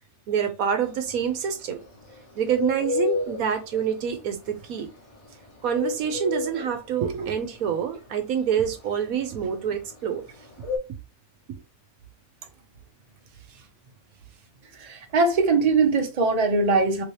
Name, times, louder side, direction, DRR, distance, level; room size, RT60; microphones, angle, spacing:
voice 1, 0.3-1.8 2.4-4.9 5.6-10.2, right 8 dB, 75° right, 1.1 m, -26 dB
Bird, 0.9-10.8, left 4 dB, 25° left, 1.0 m, -31 dB
voice 2, 14.8-17.0, right 3 dB, 35° right, 0.6 m, -21 dB
3.0 x 2.8 x 3.1 m
omnidirectional pair, 1.5 m